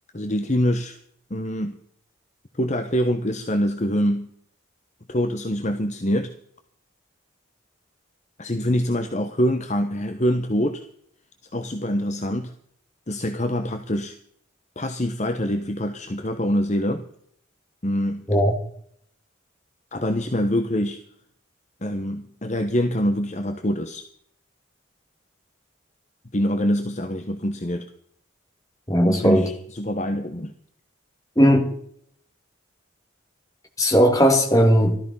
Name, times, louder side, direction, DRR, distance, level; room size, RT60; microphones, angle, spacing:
voice 1, 0.1-1.0 1.3-1.8 2.6-4.3 5.1-6.3 8.4-10.8 11.5-12.5 13.1-14.1 14.8-17.1 17.8-18.3 19.9-21.0 21.8-24.0 26.3-27.9 29.0-30.5, equal, 35° left, 1.0 m, -25 dB
voice 2, 28.9-29.5 31.4-31.7 33.8-35.0, equal, 15° left, 2.2 m, -17 dB
14.5 x 13.0 x 5.5 m
head